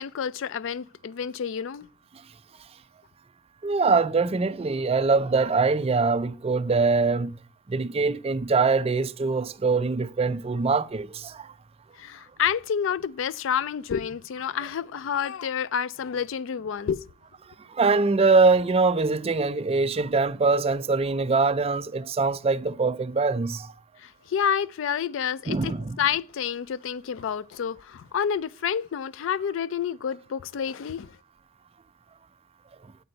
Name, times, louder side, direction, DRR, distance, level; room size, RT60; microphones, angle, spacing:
voice 1, 0.0-1.9 12.0-17.0 24.0-31.1, left 8 dB, 65° left, 0.4 m, -29 dB
voice 2, 3.6-7.3 7.7-11.5 17.7-23.7 25.5-26.0, right 4 dB, 30° right, 0.4 m, -23 dB
9.2 x 8.8 x 4.0 m
head